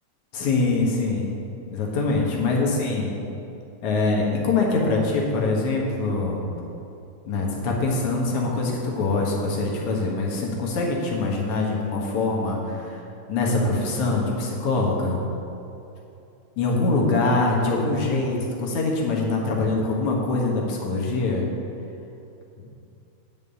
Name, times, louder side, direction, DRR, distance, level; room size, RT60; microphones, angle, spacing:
voice 1, 0.3-1.3 1.7-3.1 3.8-6.4 7.3-13.0 13.3-15.2 16.6-21.4 22.6-22.7, left 3 dB, 75° left, -2 dB, 2.8 m, -24 dB
9.6 x 5.5 x 8.3 m, 2.7 s
omnidirectional pair, 3.4 m